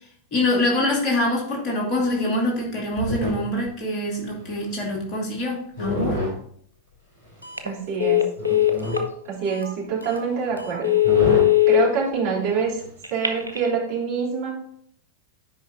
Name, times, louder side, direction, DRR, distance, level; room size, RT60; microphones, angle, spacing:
voice 1, 0.3-6.2, left 1 dB, 35° left, -2 dB, 2.5 m, -24 dB
sound 1, 2.7-3.7 4.3-5.1 5.8-6.4 7.3-7.4 8.4-9.0 10.1-10.2 10.5-10.6 11.0-11.5 12.8-13.0, equal, 85° right, 3.0 m, -28 dB
Telephone, 7.4-7.7 8.0-9.1 9.6-9.7 10.1-10.3 10.7-11.8 13.0-13.7, left 13 dB, 85° left, 0.9 m, -19 dB
voice 2, 7.6-8.2 9.2-10.9 11.7-12.8 13.1-14.5, right 6 dB, 45° right, -5 dB, 3.4 m, -25 dB
9.7 x 5.2 x 3.8 m, 0.64 s
figure-of-eight pair, 90°, 0 cm